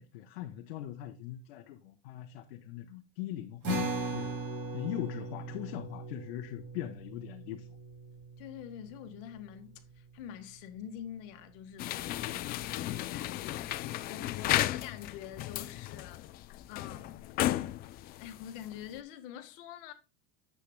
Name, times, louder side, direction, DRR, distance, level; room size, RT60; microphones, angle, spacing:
voice 1, 0.0-4.3 4.7-7.7, left 12 dB, 85° left, 1.0 m, -41 dB
sound 1, 3.6-10.3, right 1 dB, 55° right, 4.9 m, -39 dB
voice 2, 8.4-16.2 16.7-17.1 18.2-19.9, left 10 dB, 65° left, 1.6 m, -46 dB
sound 2, 11.8-19.0, left 14 dB, 30° left, 0.4 m, -34 dB
9.9 x 7.7 x 2.2 m
cardioid pair, 160°, 29 cm